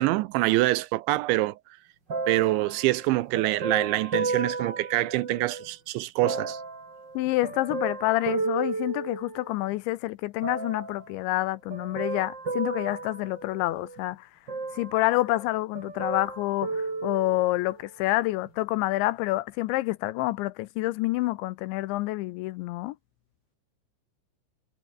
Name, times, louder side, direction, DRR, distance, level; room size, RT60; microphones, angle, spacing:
voice 1, 0.0-1.6 2.3-6.6, right 18 dB, 80° right, 2.9 m, -25 dB
sound 1, 2.1-5.7 6.2-9.7 10.4-11.1 11.7-14.0 14.5-15.5 15.7-17.8 18.5-18.6, right 3 dB, 25° right, 4.4 m, -34 dB
voice 2, 7.2-14.3 14.7-22.9, left 18 dB, 80° left, 2.8 m, -28 dB
omnidirectional pair, 5.6 m